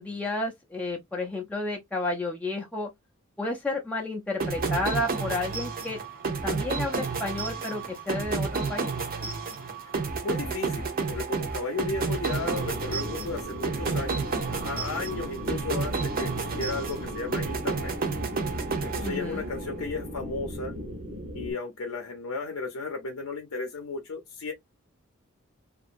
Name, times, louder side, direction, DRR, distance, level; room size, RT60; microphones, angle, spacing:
voice 1, 0.0-2.9 3.4-6.0 6.4-8.9 19.0-19.4, left 2 dB, 5° left, 0.4 m, -31 dB
sound 1, 4.4-19.7, right 4 dB, 45° right, 0.6 m, -31 dB
voice 2, 9.8-17.9 18.8-20.7 21.3-24.5, left 3 dB, 75° left, 0.6 m, -34 dB
sound 2, 12.3-21.5, equal, 65° right, 0.9 m, -37 dB
2.9 x 2.4 x 2.4 m
head